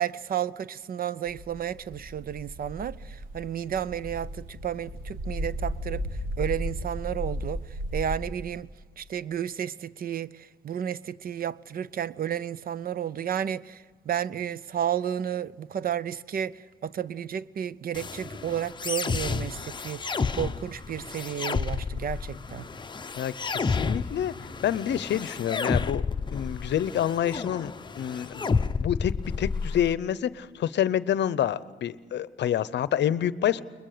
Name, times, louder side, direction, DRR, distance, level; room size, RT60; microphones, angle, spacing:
voice 1, 0.0-6.0 6.4-7.6 7.9-8.7 9.0-22.6, right 9 dB, 50° right, 0.5 m, -32 dB
sound 1, 1.2-8.2, equal, 85° right, 6.1 m, -35 dB
sound 2, 17.9-29.9, left 4 dB, 25° left, 0.7 m, -31 dB
voice 2, 23.2-24.3 24.6-26.0 26.3-27.7 28.0-28.5 28.8-33.6, left 10 dB, 60° left, 0.7 m, -27 dB
22.0 x 21.0 x 6.7 m
cardioid pair, 90°, 20 cm